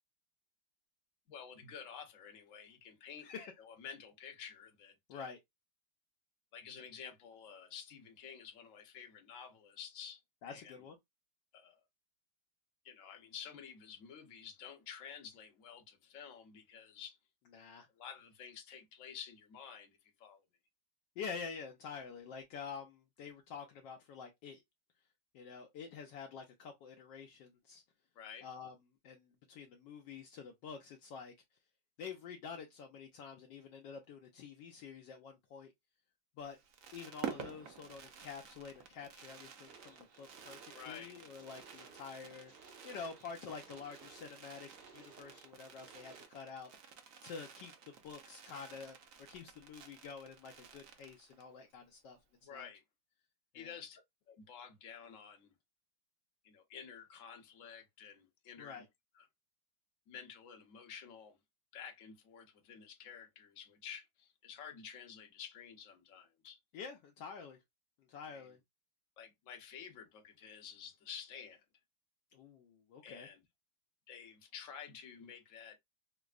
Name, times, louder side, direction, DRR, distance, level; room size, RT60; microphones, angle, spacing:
voice 1, 1.3-3.3 3.6-5.4 6.5-10.2 10.5-10.9 11.5-11.8 12.8-17.2 17.9-20.4 28.1-28.5 40.7-41.1 52.4-52.8 53.5-54.0 54.3-55.5 56.4-58.8 59.1-59.3 60.1-61.4 61.7-66.6 68.3-68.6 69.2-71.6 73.0-73.4 74.1-75.8, left 7 dB, 50° left, 1.1 m, -51 dB
voice 2, 10.4-11.0 17.5-17.9 21.2-24.6 25.3-27.8 28.4-28.7 29.0-31.3 32.0-35.7 36.4-36.6 36.9-40.6 40.9-46.7 47.2-49.0 49.3-52.2 52.5-52.7 53.5-53.7 58.6-58.9 66.7-67.6 68.1-68.6 72.3-73.3, left 6 dB, 75° left, 1.2 m, -48 dB
Fireworks, 36.4-51.6 51.9-52.0 52.1-52.4, right 7 dB, 85° right, 0.7 m, -51 dB
sound 1, 39.7-46.3, right 5 dB, 65° right, 2.0 m, -59 dB
5.2 x 2.0 x 2.4 m
omnidirectional pair, 2.2 m